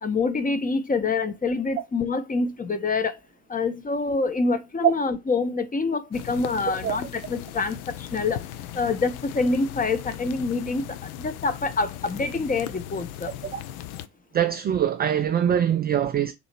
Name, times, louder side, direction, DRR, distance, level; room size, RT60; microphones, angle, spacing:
voice 1, 0.0-3.2 3.5-8.4 8.7-13.3, left 3 dB, 20° left, 0.7 m, -26 dB
sound 1, 6.1-14.1, left 12 dB, 65° left, 0.6 m, -38 dB
voice 2, 14.3-16.3, right 10 dB, 25° right, 0.3 m, -23 dB
3.8 x 2.8 x 4.5 m
hypercardioid pair, 60°, 48 cm